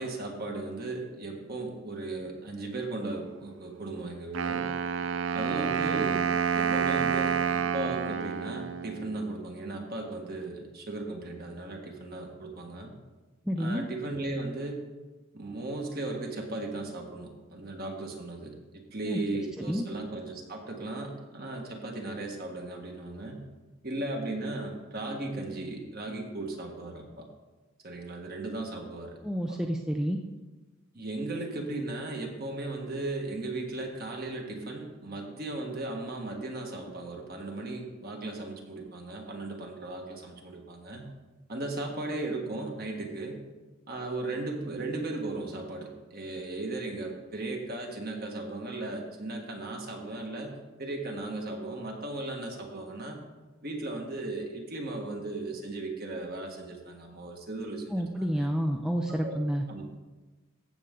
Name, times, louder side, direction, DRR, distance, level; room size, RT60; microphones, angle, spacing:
voice 1, 0.0-4.7 5.3-12.9 13.6-14.8 15.3-23.4 23.8-27.3 27.8-29.1 29.5-29.6 30.9-41.1 41.5-43.4 43.9-53.2 53.6-58.5 59.1-59.4 59.7-59.8, right 2 dB, 45° right, 1 dB, 1.6 m, -36 dB
Wind instrument woodwind instrument, 4.3-9.3, right 6 dB, 60° right, 0.4 m, -29 dB
voice 2, 13.5-13.9 19.0-19.2 19.6-19.9 29.2-30.2 57.9-59.6, equal, 5° right, 2 dB, 0.4 m, -29 dB
15.0 x 6.8 x 3.7 m, 1.2 s
head